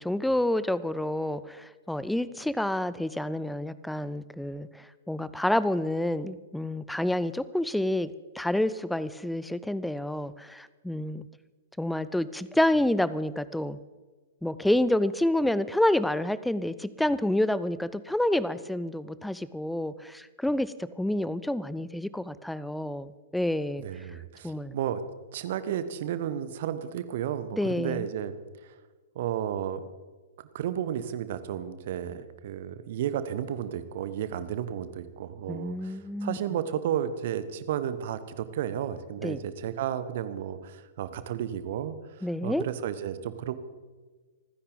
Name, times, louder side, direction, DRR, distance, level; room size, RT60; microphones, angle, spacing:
voice 1, 0.0-8.1 8.4-11.3 11.8-13.8 14.4-23.9 24.4-24.8 27.5-28.1 35.5-36.4 39.2-39.4 42.2-42.7, left 1 dB, ahead, 17 dB, 0.5 m, -28 dB
voice 2, 23.8-25.0 25.3-28.3 28.6-28.8 29.1-29.8 30.5-43.5, right 10 dB, 50° right, 13 dB, 1.1 m, -33 dB
27.5 x 10.0 x 4.0 m, 1.4 s
figure-of-eight pair, 110°, 0 cm